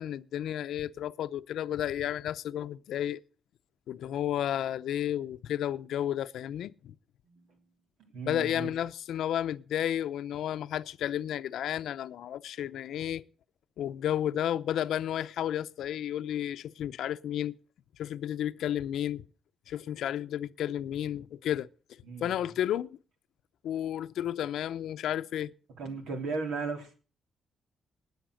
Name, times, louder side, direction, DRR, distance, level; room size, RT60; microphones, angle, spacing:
voice 1, 0.0-3.2 3.9-6.9 8.3-13.2 13.8-17.6 18.0-19.2 19.7-21.7 22.2-22.9 23.6-25.5, left 11 dB, 85° left, 0.7 m, -32 dB
voice 2, 7.2-7.6 8.0-8.7 22.0-22.4 25.8-26.9, right 4 dB, 90° right, 3.4 m, -36 dB
19.5 x 7.9 x 6.4 m
cardioid pair, 130°, 0 cm